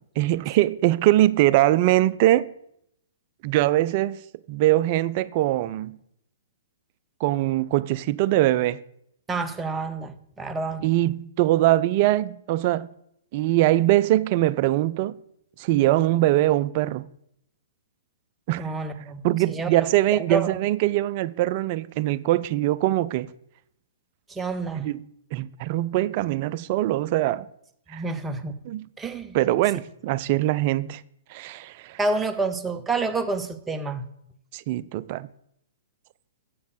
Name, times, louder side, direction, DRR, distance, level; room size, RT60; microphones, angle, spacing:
voice 1, 0.2-2.5 3.4-4.2 4.5-6.0 7.2-8.8 10.8-12.9 13.3-15.2 15.6-17.1 18.5-18.7 19.2-23.3 24.8-27.5 27.9-28.0 28.7-28.9 29.3-31.0 31.3-32.0 34.5-35.3, right 15 dB, 40° right, 0.4 m, -22 dB
voice 2, 9.3-10.8 18.6-20.5 24.3-24.9 27.9-28.6 29.0-29.4 32.0-34.1, right 3 dB, 10° right, 0.7 m, -29 dB
7.7 x 7.1 x 6.4 m
figure-of-eight pair, 115°, 0 cm